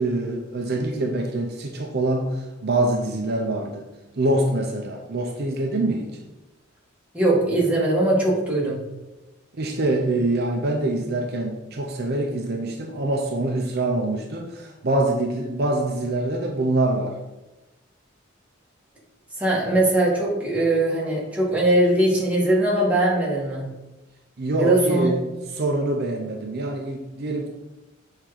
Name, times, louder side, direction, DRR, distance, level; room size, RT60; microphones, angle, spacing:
voice 1, 0.0-6.2 9.6-17.2 24.4-25.2 25.5-27.5, right 2 dB, 55° right, 2 dB, 0.7 m, -25 dB
voice 2, 7.1-8.8 19.4-23.7 24.6-25.1, right 1 dB, 5° right, -5 dB, 1.8 m, -20 dB
7.3 x 3.7 x 4.9 m, 1.1 s
head